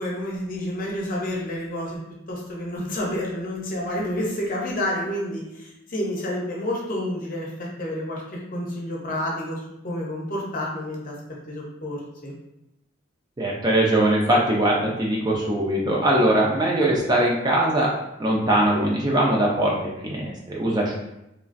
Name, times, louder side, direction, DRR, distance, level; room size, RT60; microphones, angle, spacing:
voice 1, 0.0-2.0 2.3-11.1 11.5-12.3, left 1 dB, 45° left, -3 dB, 0.7 m, -29 dB
voice 2, 13.4-17.9 18.2-21.0, right 1 dB, 20° right, -3 dB, 0.4 m, -21 dB
3.1 x 2.4 x 2.5 m, 0.88 s
head